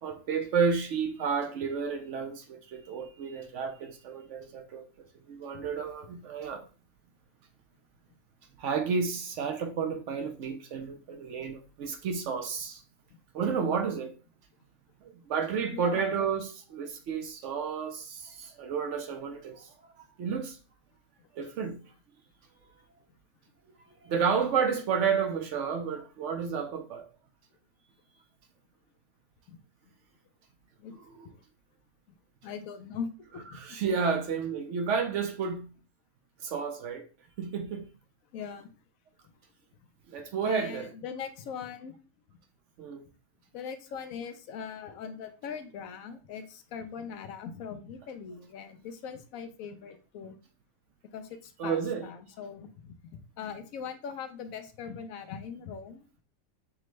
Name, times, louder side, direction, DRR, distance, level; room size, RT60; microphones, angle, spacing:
voice 1, 0.0-4.9 5.3-6.7 8.6-12.8 13.3-14.1 15.0-20.6 21.3-21.8 24.0-27.0 33.5-35.7 36.4-37.0 37.4-37.8 40.1-40.9 42.8-43.0 51.6-52.0, right 6 dB, 70° right, 0.8 m, -31 dB
voice 2, 15.7-16.3 29.5-29.6 30.8-31.0 31.2-31.4 32.1-32.2 32.4-33.8 38.3-38.7 39.2-39.3 40.4-42.0 42.3-42.4 43.5-50.4 51.1-56.1, left 6 dB, 75° left, 1.0 m, -41 dB
5.9 x 2.1 x 3.1 m
omnidirectional pair, 1.5 m